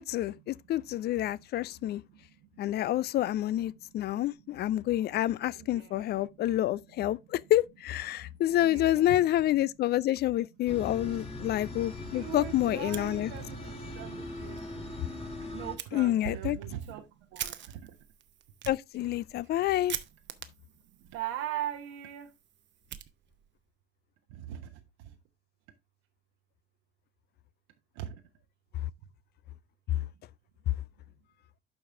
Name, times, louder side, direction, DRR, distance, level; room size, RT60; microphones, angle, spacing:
voice 1, 0.0-2.0 2.6-13.3 15.9-16.6 18.7-20.0, left 13 dB, 35° left, 0.4 m, -28 dB
voice 2, 2.1-2.7 4.1-4.9 5.6-6.1 7.1-7.2 8.1-9.3 11.1-11.3 12.1-15.0 15.5-18.0 21.0-22.3 24.3-25.2 27.9-28.2, right 11 dB, 60° right, 1.1 m, -41 dB
sound 1, 10.7-15.8, left 2 dB, 20° left, 1.8 m, -40 dB
Fire, 12.8-13.7 14.0-14.1 14.5-14.6 15.8-15.9 16.5-23.6, right 10 dB, 35° right, 0.9 m, -44 dB
11.5 x 4.7 x 3.5 m
figure-of-eight pair, 60°, 31 cm